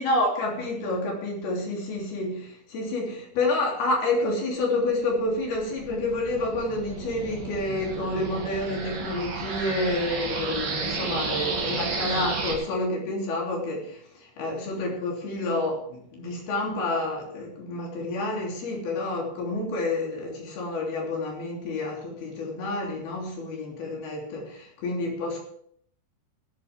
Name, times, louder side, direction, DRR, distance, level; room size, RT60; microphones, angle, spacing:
voice 1, 0.0-25.4, left 2 dB, 75° left, -1 dB, 5.0 m, -29 dB
sound 1, 5.2-12.5, right 4 dB, 65° right, 4.2 m, -32 dB
17.0 x 11.5 x 3.6 m, 0.63 s
omnidirectional pair, 4.5 m